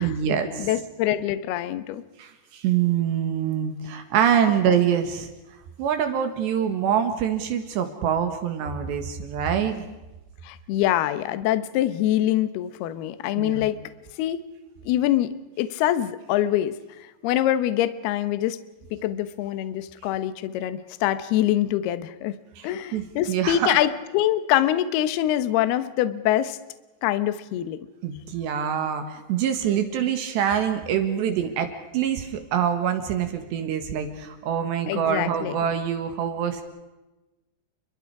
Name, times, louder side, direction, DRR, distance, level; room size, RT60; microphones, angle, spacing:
voice 1, 0.0-0.7 2.2-5.3 5.8-9.8 13.4-13.7 22.6-23.8 28.0-36.6, right 8 dB, 70° right, 7 dB, 3.7 m, -25 dB
voice 2, 0.6-2.0 10.4-13.8 14.2-14.4 14.9-16.8 17.2-18.6 18.9-22.3 22.6-26.6 27.0-27.8 34.9-35.6, left 12 dB, 70° left, 12 dB, 2.8 m, -24 dB
30.0 x 23.0 x 4.8 m, 1.1 s
omnidirectional pair, 5.3 m